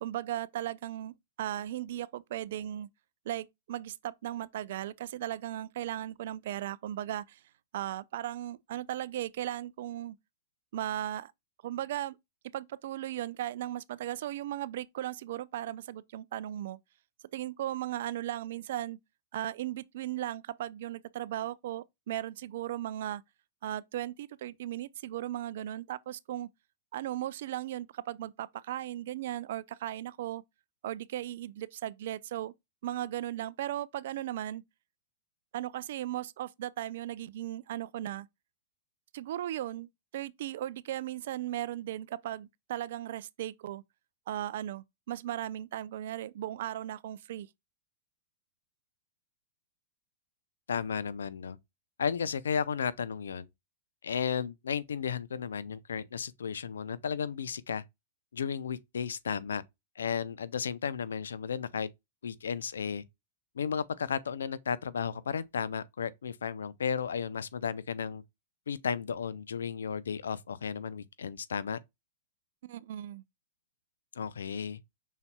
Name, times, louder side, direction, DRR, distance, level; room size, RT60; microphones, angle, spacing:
voice 1, 0.0-2.9 3.3-7.4 7.7-10.2 10.7-11.3 11.6-12.2 12.5-16.8 17.3-19.0 19.3-23.2 23.6-26.5 26.9-30.4 30.8-32.5 32.8-34.6 35.5-38.3 39.1-43.8 44.3-47.5 72.6-73.2, right 13 dB, 65° right, 0.4 m, -37 dB
voice 2, 50.7-51.6 52.0-53.5 54.0-57.8 58.3-59.6 60.0-61.9 62.2-63.0 63.5-68.2 68.7-71.8 74.1-74.8, left 7 dB, 85° left, 0.5 m, -34 dB
5.7 x 4.2 x 2.2 m
hypercardioid pair, 125°, 0 cm